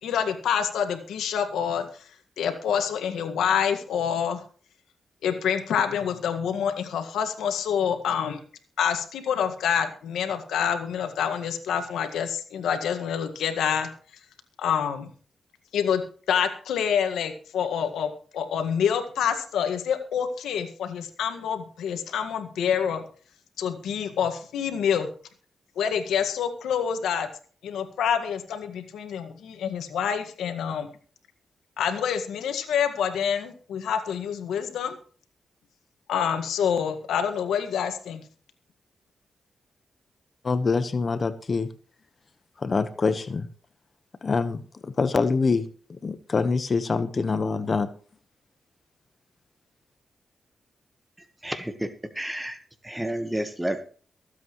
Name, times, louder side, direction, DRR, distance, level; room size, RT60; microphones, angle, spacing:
voice 1, 0.0-1.9 2.4-4.4 5.2-8.4 8.8-13.9 14.6-15.1 15.7-16.0 16.3-23.0 23.6-25.1 25.7-27.3 27.6-30.9 31.8-35.0 36.1-38.2, left 8 dB, 90° left, 7 dB, 1.8 m, -27 dB
voice 2, 40.4-41.7 42.6-43.5 44.2-47.9, left 4 dB, 50° left, 11 dB, 1.2 m, -25 dB
voice 3, 51.4-51.9 52.1-52.6 52.8-53.8, right 1 dB, 10° right, 9 dB, 1.5 m, -30 dB
23.5 x 8.3 x 3.2 m, 0.43 s
supercardioid pair, 50°, 0 cm